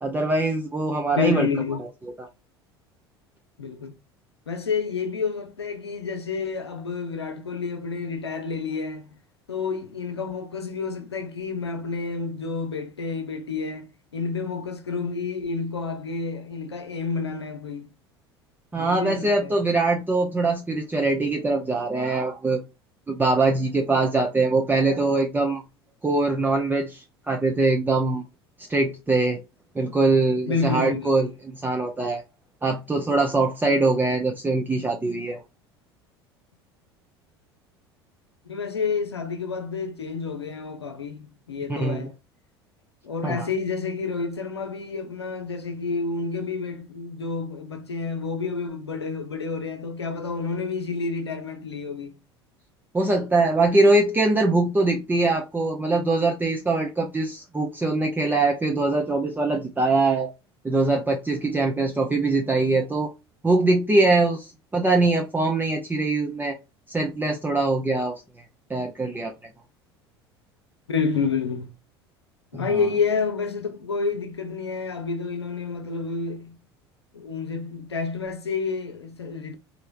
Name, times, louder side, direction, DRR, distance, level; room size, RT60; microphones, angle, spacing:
voice 1, 0.0-1.5 2.2-2.3 18.7-22.6 23.1-25.6 26.0-28.2 28.7-29.4 29.7-32.2 32.6-35.4 41.7-42.1 43.2-43.5 52.9-60.3 60.6-63.1 63.4-66.6 66.9-68.2 68.7-69.3 72.5-72.9, right 2 dB, 15° right, 0.7 m, -22 dB
voice 2, 1.2-1.8 3.6-3.9 4.5-9.2 9.5-13.9 14.1-17.9 18.8-19.6 30.5-31.1 33.6-33.9 38.4-42.1 43.0-52.2 70.9-71.7 72.5-76.6 77.1-79.6, left 5 dB, 85° left, 0.7 m, -29 dB
4.3 x 2.8 x 2.5 m
figure-of-eight pair, 70°, 13 cm